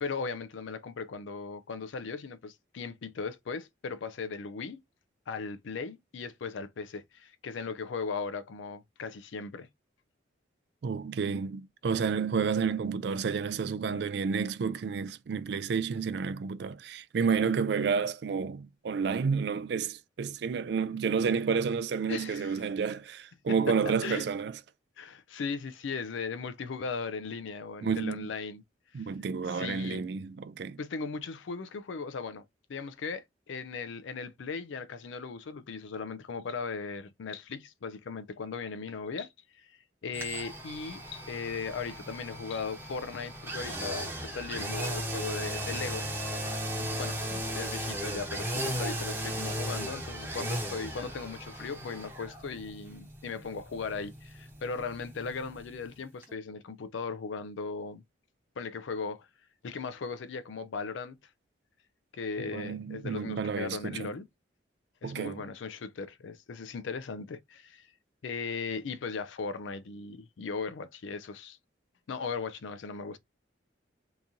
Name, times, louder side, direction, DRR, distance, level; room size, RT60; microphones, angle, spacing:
voice 1, 0.0-4.8 5.3-9.7 22.1-22.7 24.0-24.3 25.0-28.6 28.9-29.0 29.5-30.0 30.8-32.4 32.7-39.3 39.5-46.1 46.4-46.5 46.8-58.0 58.6-59.3 59.6-61.2 62.1-64.2 65.0-67.9 68.2-71.6 72.1-73.2, left 5 dB, 75° left, 0.4 m, -38 dB
voice 2, 10.8-24.5 27.8-28.3 28.9-30.8 62.5-64.2 65.0-65.5, right 5 dB, 60° right, 0.3 m, -30 dB
sound 1, 40.1-55.9 56.2-56.3, right 1 dB, 10° right, 0.8 m, -36 dB
2.9 x 2.6 x 3.5 m
head